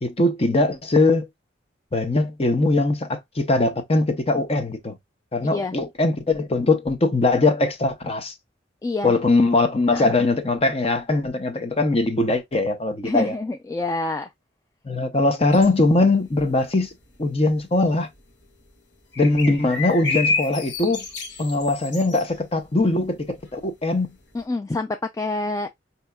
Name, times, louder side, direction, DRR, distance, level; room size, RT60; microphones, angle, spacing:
voice 1, 0.0-1.3 1.9-4.9 5.3-8.3 9.0-13.3 14.8-16.9 17.2-18.1 19.2-21.0 21.4-24.1, left 2 dB, 35° left, 0.7 m, -21 dB
voice 2, 5.4-5.8 8.8-9.1 9.9-10.1 13.0-14.3 24.3-25.7, left 2 dB, 15° left, 0.3 m, -27 dB
sound 1, 15.5-16.8 17.1-17.5 17.9-18.0 18.2-18.6 19.1-23.5 23.8-23.9 24.2-24.3, left 3 dB, 70° left, 1.3 m, -29 dB
5.4 x 2.8 x 2.2 m
head